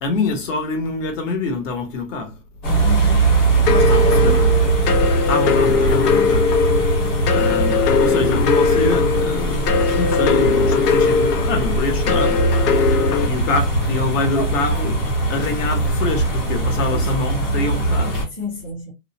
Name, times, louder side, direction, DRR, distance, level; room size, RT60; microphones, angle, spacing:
voice 1, 0.0-2.4 3.8-4.5 5.3-6.5 6.9-18.2, left 3 dB, 55° left, 1.0 m, -26 dB
sound 1, 2.6-18.2, right 3 dB, 25° left, 0.9 m, -20 dB
voice 2, 2.8-3.3 3.6-4.5 6.0-6.4 16.9-17.1 18.4-18.9, left 3 dB, 5° left, 0.4 m, -30 dB
sound 2, 3.7-13.3, left 5 dB, 85° left, 0.7 m, -19 dB
2.6 x 2.0 x 2.7 m
hypercardioid pair, 165°, 46 cm